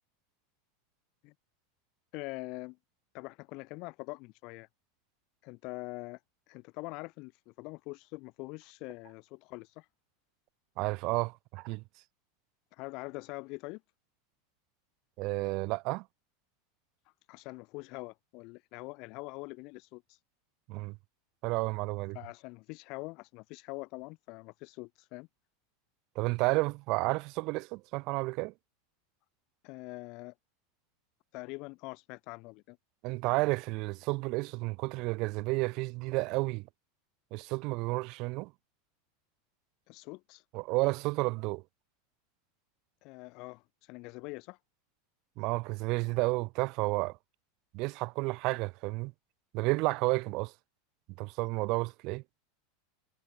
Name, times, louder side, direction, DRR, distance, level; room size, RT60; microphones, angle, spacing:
voice 1, 2.1-2.8 3.1-4.7 5.4-6.2 6.5-9.9 12.7-13.8 17.3-20.2 22.1-25.3 29.6-30.3 31.3-32.8 39.9-40.4 43.0-44.6, left 26 dB, 55° left, 1.0 m, -44 dB
voice 2, 10.8-11.8 15.2-16.0 20.7-21.0 21.4-22.2 26.2-28.5 33.0-36.7 37.3-38.5 40.5-41.6 45.4-47.2 47.7-49.1 49.5-50.5 51.2-52.2, right 25 dB, 55° right, 0.8 m, -31 dB
supercardioid pair, 115°, 0 cm